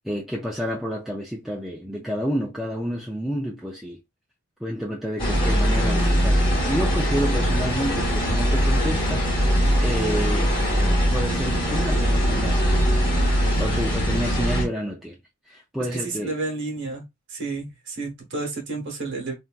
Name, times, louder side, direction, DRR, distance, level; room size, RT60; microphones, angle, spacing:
voice 1, 0.0-4.0 4.6-12.9 13.4-15.2 15.4-16.4, equal, ahead, 0.3 m, -30 dB
sound 1, 5.2-14.6, equal, 20° left, 1.1 m, -21 dB
voice 2, 16.0-17.0 17.3-19.3, right 3 dB, 55° right, 1.0 m, -31 dB
3.3 x 2.3 x 2.3 m
head